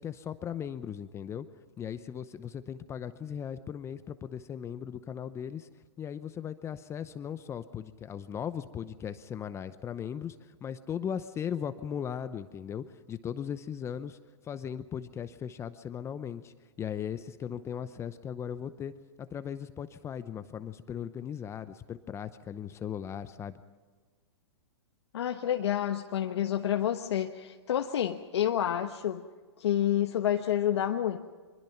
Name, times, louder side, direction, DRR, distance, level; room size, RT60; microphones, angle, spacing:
voice 1, 0.0-1.5 1.8-5.7 6.0-14.2 14.4-18.9 19.2-23.5, left 8 dB, 20° left, 12 dB, 0.7 m, -38 dB
voice 2, 25.1-29.2 29.6-31.2, left 10 dB, 70° left, 4 dB, 1.2 m, -29 dB
24.5 x 22.0 x 5.9 m, 1.4 s
hypercardioid pair, 125°, 15 cm